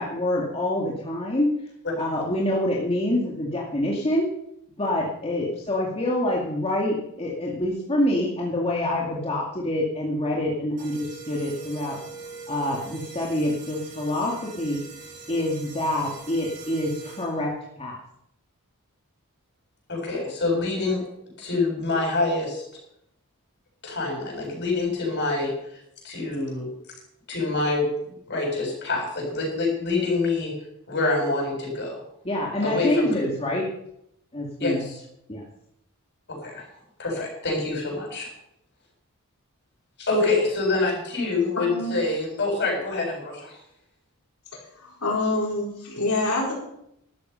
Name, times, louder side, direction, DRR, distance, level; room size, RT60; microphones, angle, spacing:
voice 1, 0.0-1.5 2.0-4.3 4.8-12.0 12.5-14.8 15.3-17.5 17.8-18.0 32.2-33.6 34.3-34.8 35.3-35.4, left 1 dB, 25° left, -3 dB, 2.3 m, -26 dB
sound 1, 10.8-17.6, right 4 dB, 40° right, 6.4 m, -42 dB
voice 2, 19.9-21.0 21.4-22.6 23.8-25.5 26.0-26.7 27.3-27.9 28.3-30.6 30.9-32.0 32.6-33.1 34.6-34.9 36.4-36.7 37.0-38.3 40.0-43.6, left 3 dB, 50° left, -1 dB, 7.8 m, -26 dB
voice 3, 44.8-46.5, left 2 dB, 75° left, -2 dB, 4.5 m, -26 dB
13.5 x 12.5 x 5.8 m, 0.77 s
head